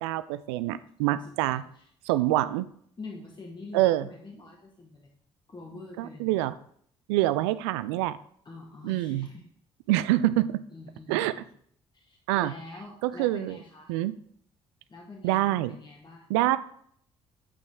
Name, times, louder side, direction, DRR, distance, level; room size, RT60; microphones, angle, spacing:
voice 1, 0.0-1.6 2.1-2.7 3.7-4.1 6.0-6.5 7.1-8.2 8.8-9.3 9.9-10.5 11.1-11.3 12.3-12.5 13.0-13.6 13.9-14.1 15.2-15.7 16.3-16.6, right 15 dB, 75° right, 14 dB, 0.4 m, -25 dB
voice 2, 1.1-2.1 3.0-5.1 5.5-6.3 8.4-9.5 10.3-11.4 11.9-14.0 14.9-16.3, left 3 dB, 30° left, -1 dB, 1.6 m, -45 dB
8.3 x 5.9 x 3.6 m, 0.64 s
figure-of-eight pair, 45°, 15 cm